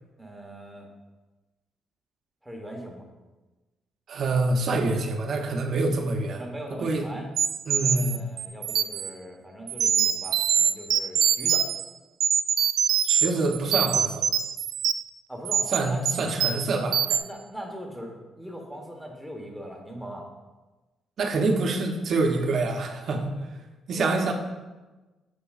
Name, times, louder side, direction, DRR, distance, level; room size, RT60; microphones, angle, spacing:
voice 1, 0.2-0.9 2.4-3.1 6.3-7.3 7.8-11.7 15.3-16.5 17.1-20.3 23.9-24.2, equal, 5° right, 1 dB, 1.2 m, -40 dB
voice 2, 4.1-6.4 6.7-7.1 7.7-8.2 13.0-14.3 15.7-17.0 21.2-23.5 23.9-24.3, right 3 dB, 60° right, 4 dB, 0.8 m, -26 dB
sound 1, 7.4-9.1 9.7-11.8 12.2-13.3 13.5-15.1 15.4-15.8 16.0-16.7 16.9-17.2, right 8 dB, 75° right, 0.3 m, -24 dB
6.8 x 6.3 x 2.4 m, 1.2 s
cardioid pair, 90°, 0 cm